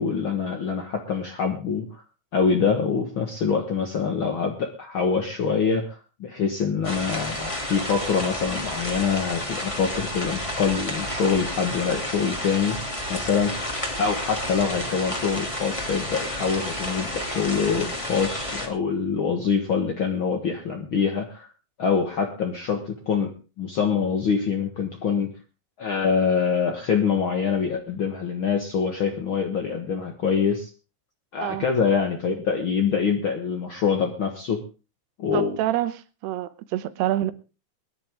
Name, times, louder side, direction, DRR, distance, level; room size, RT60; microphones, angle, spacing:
voice 1, 0.0-2.0 2.3-12.8 13.1-13.7 14.0-21.5 21.8-25.3 25.8-30.7 31.3-34.6 35.2-35.6, left 6 dB, 65° left, 1.2 m, -25 dB
sound 1, 6.8-18.7, left 1 dB, 10° left, 1.7 m, -31 dB
voice 2, 35.3-35.9 36.2-37.3, right 13 dB, 90° right, 3.0 m, -26 dB
22.0 x 10.5 x 3.6 m
omnidirectional pair, 4.6 m